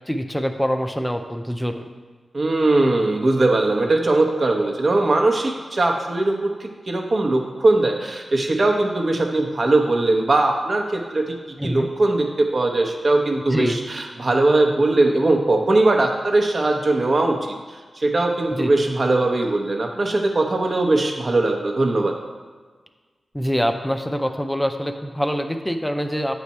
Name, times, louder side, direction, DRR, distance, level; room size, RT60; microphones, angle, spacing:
voice 1, 0.1-1.9 11.6-11.9 13.5-13.8 18.5-18.9 23.3-26.3, equal, 5° left, 6 dB, 0.5 m, -25 dB
voice 2, 2.3-11.4 11.6-17.4 17.9-22.1, right 2 dB, 55° right, 2 dB, 0.9 m, -20 dB
8.3 x 3.3 x 4.2 m, 1.4 s
cardioid pair, 50°, 0 cm